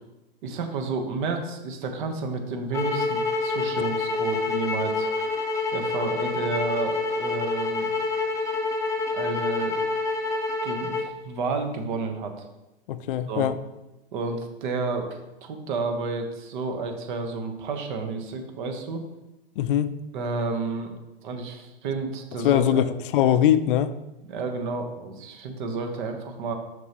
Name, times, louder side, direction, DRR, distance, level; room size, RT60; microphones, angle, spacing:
voice 1, 0.4-5.1 5.7-7.9 9.1-9.8 10.6-12.5 13.3-13.5 14.1-19.0 20.1-20.9 21.2-22.8 24.3-26.5, right 4 dB, 55° right, 5 dB, 1.1 m, -31 dB
sound 1, 2.7-11.1, left 3 dB, 10° left, 0.7 m, -27 dB
voice 2, 12.9-13.6 19.6-19.9 22.4-23.9, left 10 dB, 60° left, 13 dB, 0.5 m, -22 dB
6.1 x 5.4 x 3.0 m, 0.99 s
hypercardioid pair, 120°, 30 cm